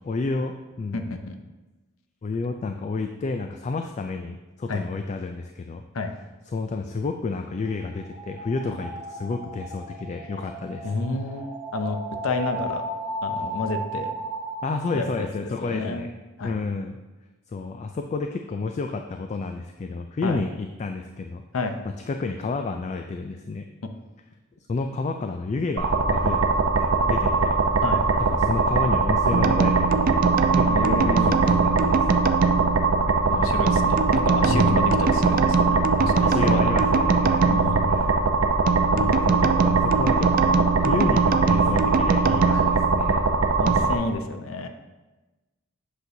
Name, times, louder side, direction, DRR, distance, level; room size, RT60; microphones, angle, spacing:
voice 1, 0.0-1.1 2.2-5.8 6.5-10.9 14.6-16.1 16.4-17.0 17.5-21.4 21.8-23.6 24.7-26.4 26.8-27.6 28.2-32.2 34.5-35.0 36.0-37.5 37.9-38.1 38.9-43.2, left 3 dB, 35° left, 5 dB, 0.3 m, -30 dB
voice 2, 0.9-1.3 4.7-4.8 5.9-6.1 8.6-8.8 10.8-12.8 13.2-14.1 14.9-15.3 15.6-16.0 16.4-16.5 20.2-20.4 21.5-21.8 27.8-28.0 30.7-31.7 33.3-35.8 36.1-36.7 37.4-37.8 39.1-39.8 42.5-42.6 43.6-44.7, left 3 dB, 85° left, 7 dB, 0.6 m, -30 dB
Creepy Whistles, 7.5-15.3, right 1 dB, 5° right, 1.0 m, -35 dB
sound 1, 25.8-43.9, right 3 dB, 80° right, 0.6 m, -22 dB
sound 2, 29.3-43.8, right 6 dB, 45° right, 0.3 m, -25 dB
8.2 x 6.0 x 2.7 m, 1.1 s
head